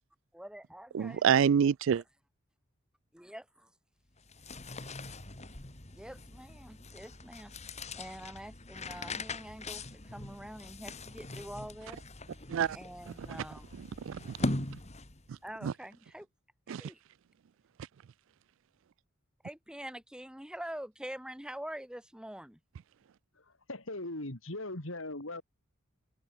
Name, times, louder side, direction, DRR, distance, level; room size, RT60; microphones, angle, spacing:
voice 1, 0.3-1.3 3.1-3.7 5.9-7.5 7.9-12.0 12.7-13.7 15.4-16.3 16.8-17.0 19.4-22.6, right 1 dB, 5° right, 1.5 m, -45 dB
voice 2, 0.9-2.0 12.5-12.8 13.8-14.5 15.3-15.7 16.7-16.8, right 7 dB, 65° right, 0.3 m, -28 dB
sound 1, 4.2-15.4, left 2 dB, 35° left, 3.1 m, -41 dB
voice 3, 23.4-25.4, left 2 dB, 65° left, 3.6 m, -40 dB
head